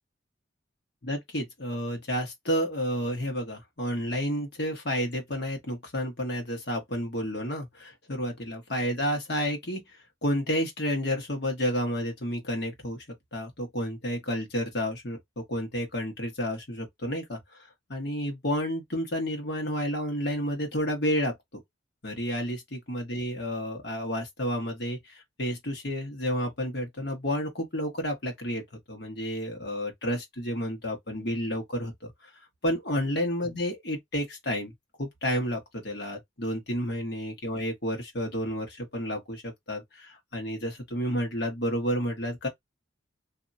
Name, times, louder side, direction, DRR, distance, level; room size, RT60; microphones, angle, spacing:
voice 1, 1.0-9.8 10.2-13.0 13.3-21.3 22.0-28.6 28.9-32.1 32.6-34.7 35.0-42.5, equal, 55° left, 1.4 m, -31 dB
2.9 x 2.7 x 2.7 m
head